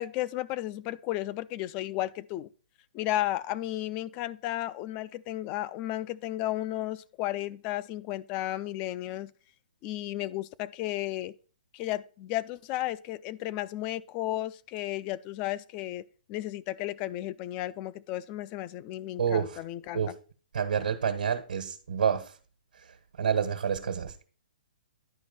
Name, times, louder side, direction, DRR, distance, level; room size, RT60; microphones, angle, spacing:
voice 1, 0.0-2.5 2.9-9.3 9.8-11.3 11.7-20.0, left 15 dB, 20° left, 0.3 m, -33 dB
voice 2, 19.2-19.6 19.9-20.1 20.5-22.3 22.7-24.1, right 7 dB, 80° right, 1.4 m, -29 dB
10.5 x 5.0 x 5.3 m
hypercardioid pair, 165°, 5 cm